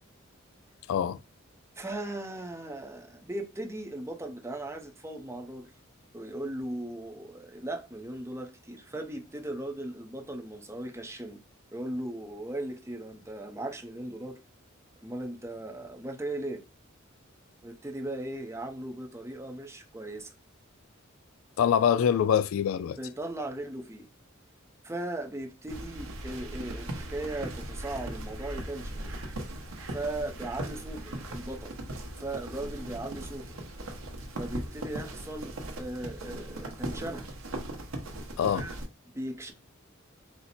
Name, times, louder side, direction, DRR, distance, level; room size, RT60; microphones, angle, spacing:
voice 1, 0.9-1.2 21.6-23.0 38.4-38.7, left 8 dB, 80° left, 0.3 m, -24 dB
voice 2, 1.8-5.7 6.1-11.4 11.7-14.4 15.0-16.6 17.6-20.3 23.0-24.1 24.8-29.0 29.9-31.8 32.2-33.5 34.4-37.3 38.5-38.8 39.1-39.5, right 1 dB, 15° right, 0.6 m, -38 dB
sound 1, 25.7-38.9, right 1 dB, 80° right, 0.9 m, -39 dB
4.3 x 2.1 x 4.0 m
head